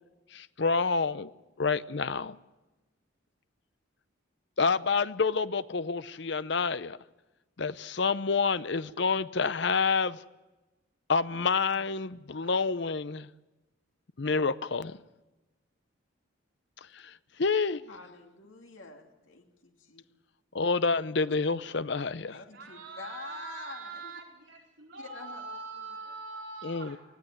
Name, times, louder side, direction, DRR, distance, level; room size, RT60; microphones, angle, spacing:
voice 1, 0.3-1.3 1.6-2.4 4.6-7.0 7.6-10.2 11.1-13.3 14.2-15.0 16.9-17.1 17.4-17.9 20.5-22.4 26.6-27.0, left 4 dB, 60° left, 0.7 m, -28 dB
voice 2, 17.9-20.0 22.3-24.2 25.1-25.6, left 3 dB, 80° left, 2.5 m, -47 dB
voice 3, 21.0-27.0, right 4 dB, 60° right, 4.3 m, -44 dB
20.0 x 15.0 x 9.4 m
head